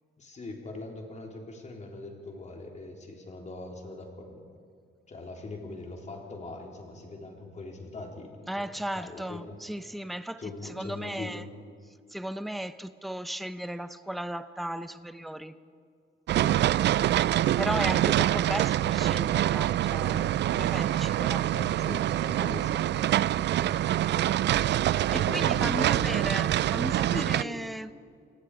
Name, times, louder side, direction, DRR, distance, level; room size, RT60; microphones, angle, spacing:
voice 1, 0.2-4.4 5.1-9.6 10.4-11.5 16.3-16.6 20.4-20.6 21.5-23.0 23.3-24.0 25.1-26.4 27.0-27.6, left 2 dB, 35° left, 1 dB, 3.8 m, -41 dB
voice 2, 8.5-11.4 12.1-15.5 17.6-21.5 24.8-27.9, right 1 dB, ahead, 12 dB, 0.7 m, -35 dB
sound 1, 16.3-27.4, right 13 dB, 60° right, 0.4 m, -25 dB
Wind instrument woodwind instrument, 19.1-23.8, right 13 dB, 90° right, 2.0 m, -51 dB
28.5 x 19.5 x 5.0 m, 2.3 s
cardioid pair, 120°, 21 cm